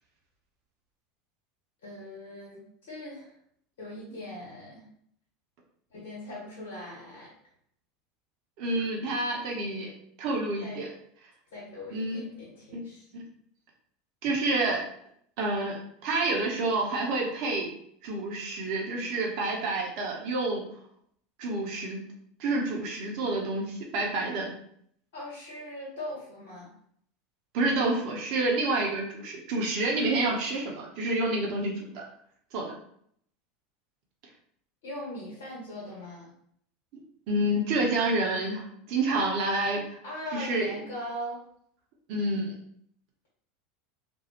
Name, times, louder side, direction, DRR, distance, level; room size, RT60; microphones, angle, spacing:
voice 1, 1.8-3.3 3.8-4.9 5.9-7.3 10.6-10.8 11.5-13.1 25.1-26.7 34.8-36.3 39.8-41.4, left 1 dB, 75° left, -7 dB, 1.3 m, -40 dB
voice 2, 8.6-9.9 10.2-10.9 11.9-12.2 12.7-12.8 13.1-13.2 14.2-14.8 15.4-17.7 18.0-20.6 21.4-22.0 22.4-24.5 27.5-32.0 32.5-32.7 37.3-39.8 40.3-40.8 42.1-42.5, right 2 dB, 60° right, -1 dB, 0.7 m, -28 dB
2.6 x 2.3 x 2.8 m, 0.67 s
hypercardioid pair, 85°, 0 cm